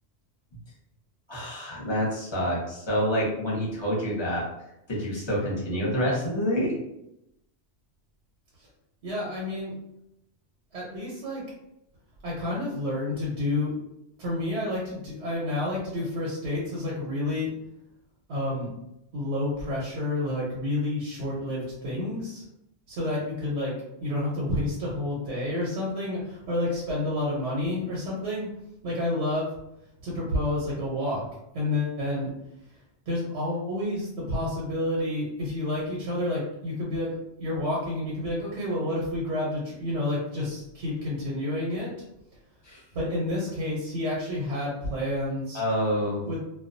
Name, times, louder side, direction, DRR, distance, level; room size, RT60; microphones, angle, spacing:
voice 1, 1.3-4.5 4.9-6.7 42.6-42.8 45.5-46.2, equal, 30° left, -5 dB, 0.7 m, -27 dB
voice 2, 9.0-9.7 10.7-11.4 12.2-13.7 14.2-17.5 18.3-18.7 19.1-22.4 22.9-28.5 28.8-29.5 30.0-31.2 31.5-32.3 33.1-41.9 42.9-45.6 46.3-46.4, left 1 dB, 85° right, -5 dB, 1.0 m, -29 dB
2.3 x 2.2 x 2.5 m, 0.83 s
omnidirectional pair, 1.1 m